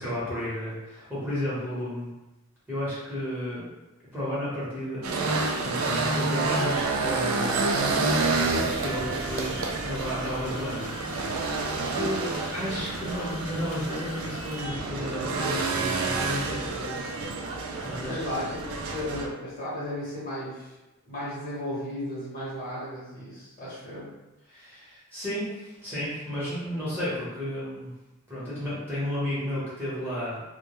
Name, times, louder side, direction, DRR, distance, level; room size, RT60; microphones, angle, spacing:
voice 1, 0.0-2.1 2.7-3.6 4.1-5.1 5.6-11.4 11.7-12.2 12.5-17.0 17.8-18.4 24.5-27.9 28.3-30.4, equal, 10° right, -11 dB, 1.0 m, -33 dB
sound 1, 5.0-19.3, right 3 dB, 75° right, 0.3 m, -29 dB
sound 2, 8.6-14.6, left 4 dB, 80° left, 0.4 m, -44 dB
voice 2, 18.0-20.8 21.0-24.2, left 1 dB, 45° left, -9 dB, 1.0 m, -35 dB
2.2 x 2.1 x 2.9 m, 1.0 s
head